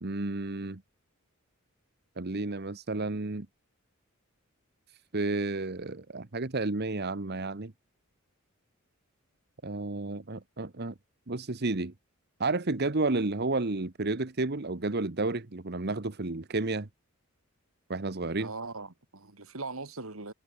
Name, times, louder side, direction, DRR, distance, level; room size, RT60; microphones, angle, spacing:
voice 1, 0.0-0.8 2.2-3.5 5.1-7.7 9.6-10.9 11.3-11.9 12.4-16.9 17.9-18.5, right 3 dB, 50° right, 1.2 m, -31 dB
voice 2, 18.4-20.3, right 3 dB, 75° right, 2.5 m, -40 dB
head